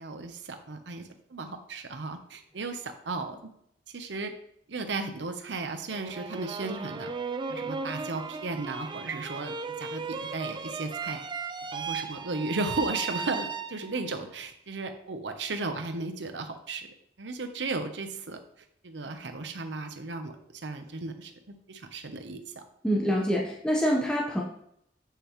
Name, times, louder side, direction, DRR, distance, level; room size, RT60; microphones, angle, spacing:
voice 1, 0.0-3.4 3.9-4.3 4.7-7.1 7.5-11.2 11.7-16.9 17.2-18.4 18.8-21.3 21.7-22.6 23.0-23.1, right 3 dB, 80° right, 7 dB, 0.8 m, -35 dB
sound 1, 5.9-14.1, right 5 dB, 25° right, 0.5 m, -36 dB
voice 2, 22.8-24.4, equal, 5° left, -3 dB, 0.9 m, -26 dB
7.6 x 6.8 x 3.1 m, 0.73 s
head